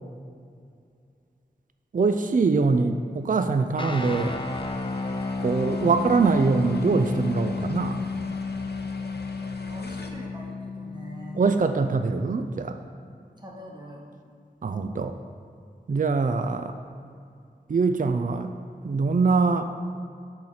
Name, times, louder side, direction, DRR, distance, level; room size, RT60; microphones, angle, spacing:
voice 1, 1.9-4.3 5.4-8.0 11.3-12.8 14.6-15.2 15.9-16.7 17.7-18.5 18.8-19.7, right 4 dB, 50° right, 8 dB, 0.4 m, -23 dB
sound 1, 3.8-12.0, left 3 dB, 30° left, 0.6 m, -32 dB
sound 2, 3.9-10.1, left 2 dB, 65° left, 0.8 m, -43 dB
voice 2, 9.4-11.5 13.4-14.1, equal, 25° right, -2 dB, 1.6 m, -43 dB
8.1 x 4.3 x 6.5 m, 2.4 s
wide cardioid pair, 45°, 18 cm